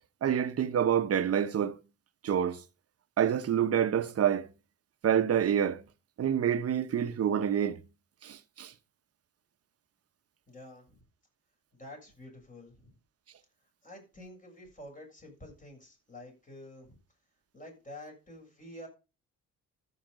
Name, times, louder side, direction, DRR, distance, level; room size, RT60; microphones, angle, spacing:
voice 1, 0.2-1.8 2.2-2.6 3.2-4.5 5.0-5.8 6.2-7.8 8.2-8.7, right 9 dB, 50° right, 1.1 m, -27 dB
voice 2, 10.5-11.0 11.8-12.9 13.8-17.0 17.5-18.9, left 1 dB, 25° left, 6.9 m, -48 dB
14.0 x 5.9 x 5.2 m
cardioid pair, 90°, 30 cm